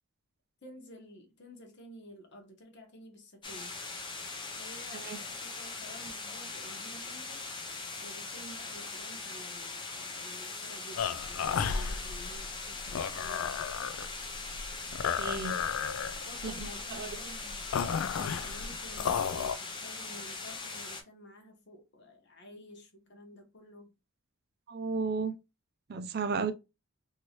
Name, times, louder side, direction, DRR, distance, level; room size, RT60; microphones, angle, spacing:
voice 1, 0.6-3.8 4.6-7.7 8.0-13.7 16.2-17.7 18.1-23.9, equal, 55° left, 1.1 m, -51 dB
sound 1, 3.4-21.0, left 3 dB, 20° left, 0.5 m, -41 dB
sound 2, 11.0-19.6, left 7 dB, 70° left, 0.3 m, -33 dB
voice 2, 15.2-15.6 16.4-16.5 16.9-17.1 24.7-25.3 25.9-26.5, right 4 dB, 45° right, 0.4 m, -33 dB
3.0 x 2.7 x 2.9 m
head